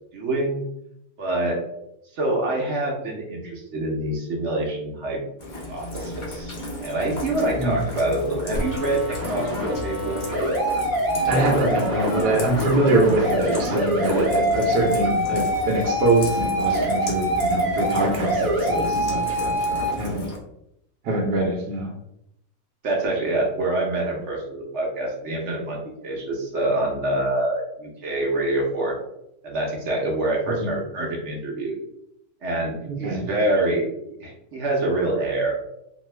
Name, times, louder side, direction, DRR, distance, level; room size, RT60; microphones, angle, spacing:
voice 1, 0.1-0.6 1.2-1.6 2.1-5.2 5.7-6.5 6.8-10.2 22.8-28.9 29.4-31.8 32.4-33.9 34.2-35.5, right 2 dB, 55° right, -1 dB, 0.9 m, -26 dB
Rain, 5.4-20.4, left 2 dB, 80° left, 0.4 m, -34 dB
sound 1, 8.5-19.9, right 1 dB, 25° right, 0.5 m, -25 dB
voice 2, 11.3-20.3 21.0-21.9 30.5-30.7 32.8-33.3, right 2 dB, 75° right, 0 dB, 1.1 m, -24 dB
2.7 x 2.3 x 3.1 m, 0.79 s
omnidirectional pair, 1.8 m